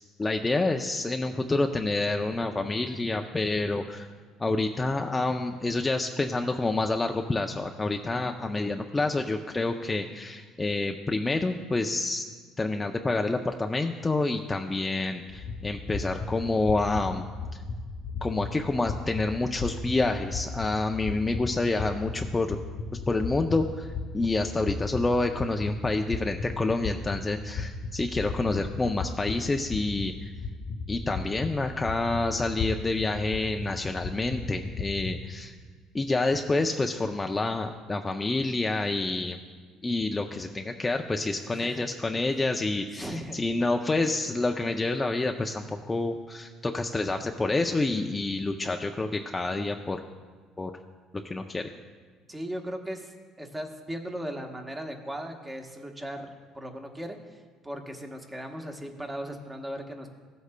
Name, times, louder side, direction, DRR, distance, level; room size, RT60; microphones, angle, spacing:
voice 1, 0.2-4.1 4.4-12.2 12.6-17.3 18.2-22.6 23.1-30.3 30.9-35.6 35.9-39.4 39.8-50.0 50.6-50.7 51.2-51.7, left 2 dB, 15° left, 4 dB, 0.4 m, -28 dB
sound 1, 15.3-35.2, left 3 dB, 50° left, 0.9 m, -36 dB
voice 2, 41.4-41.9 43.0-43.4 52.3-56.3 56.5-60.1, equal, 15° right, 3 dB, 1.0 m, -37 dB
15.5 x 8.1 x 2.2 m, 1.5 s
cardioid pair, 110°, 0 cm